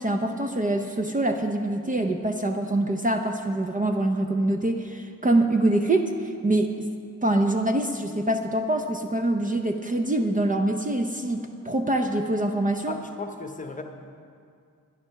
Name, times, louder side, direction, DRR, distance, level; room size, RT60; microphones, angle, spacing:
voice 1, 0.0-6.7 7.2-11.4 11.6-12.9, right 1 dB, 25° right, 4 dB, 0.6 m, -24 dB
voice 2, 12.9-13.8, left 3 dB, 25° left, 5 dB, 0.9 m, -35 dB
12.0 x 10.5 x 5.7 m, 2.3 s
wide cardioid pair, 140°, 33 cm